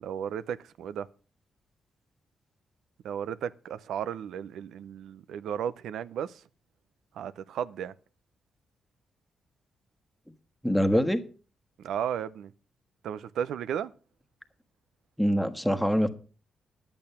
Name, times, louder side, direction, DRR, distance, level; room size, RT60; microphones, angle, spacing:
voice 1, 0.0-1.1 3.0-6.4 7.2-7.9 11.8-12.5 13.0-13.9, right 9 dB, 85° right, 0.6 m, -34 dB
voice 2, 10.6-11.2 15.2-16.1, equal, ahead, 1.4 m, -24 dB
10.5 x 8.7 x 5.6 m
cardioid pair, 80°, 0 cm